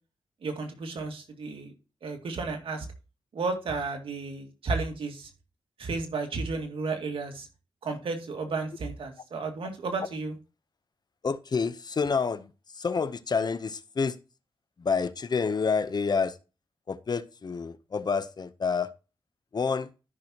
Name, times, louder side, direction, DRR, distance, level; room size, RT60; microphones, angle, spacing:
voice 1, 0.4-1.7 2.0-2.9 3.3-5.3 5.8-7.5 7.8-10.3, right 3 dB, 75° right, 2.2 m, -33 dB
voice 2, 11.2-14.2 14.8-16.4 16.9-18.9 19.5-19.9, left 5 dB, 50° left, 0.8 m, -28 dB
13.5 x 6.1 x 2.9 m
cardioid pair, 65°, 9 cm